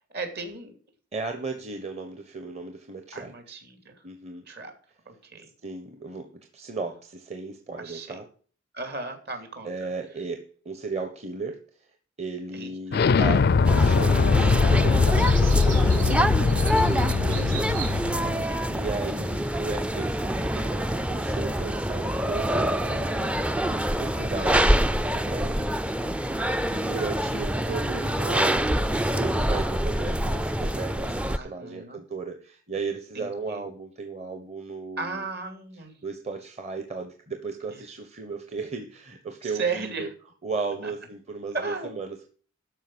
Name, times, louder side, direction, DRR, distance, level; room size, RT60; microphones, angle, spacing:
voice 1, 0.1-0.7 3.1-3.9 4.5-4.7 5.1-5.5 7.8-8.2 8.7-9.9 12.5-13.1 16.6-17.2 18.2-18.8 31.4-32.0 33.1-33.6 35.0-36.0 39.4-40.1 40.8-40.9 41.5-41.9, right 4 dB, 55° right, 5 dB, 2.9 m, -36 dB
voice 2, 1.1-3.3 4.0-4.4 5.6-8.2 9.6-11.6 12.2-17.7 18.7-23.7 24.0-25.7 26.7-35.2 36.0-40.1 40.4-42.3, right 4 dB, 35° right, 6 dB, 1.2 m, -36 dB
Explosion, 12.9-18.4, left 4 dB, 55° left, 0.4 m, -21 dB
sound 1, 13.0-25.5, right 4 dB, 85° right, 3.9 m, -44 dB
sound 2, 13.6-31.4, equal, 5° right, 0.4 m, -26 dB
13.0 x 5.2 x 6.2 m, 0.43 s
head